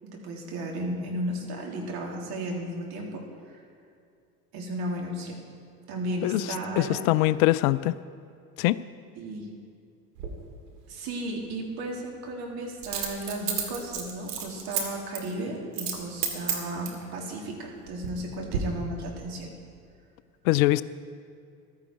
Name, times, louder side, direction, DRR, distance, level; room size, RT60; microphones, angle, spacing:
voice 1, 0.0-3.6 4.5-5.4 5.9-7.0 9.1-9.5 10.9-19.5, right 1 dB, 50° right, 0 dB, 3.2 m, -34 dB
voice 2, 6.8-7.9 8.6-8.8 20.4-20.8, left 18 dB, 60° left, 16 dB, 0.5 m, -22 dB
Coin (dropping), 10.2-10.3 12.8-14.8 15.1-15.3 15.7-17.0 17.7-18.2 18.5-18.6, right 8 dB, 80° right, 2.2 m, -31 dB
14.5 x 12.5 x 4.7 m, 2.5 s
hypercardioid pair, 75°, 47 cm